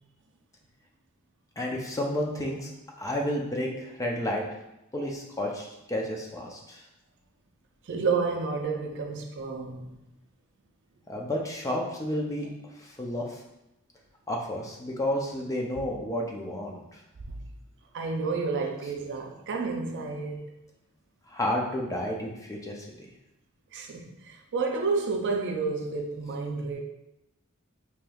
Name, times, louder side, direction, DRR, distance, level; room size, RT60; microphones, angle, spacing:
voice 1, 1.6-2.7 3.0-4.4 4.9-6.8 11.1-12.5 12.7-13.4 14.3-17.0 21.3-23.1, left 1 dB, 15° left, 0.5 m, -31 dB
voice 2, 7.8-10.0 17.3-17.4 17.9-20.4 23.7-26.8, right 4 dB, 55° right, 0.5 m, -30 dB
4.9 x 2.9 x 2.3 m
head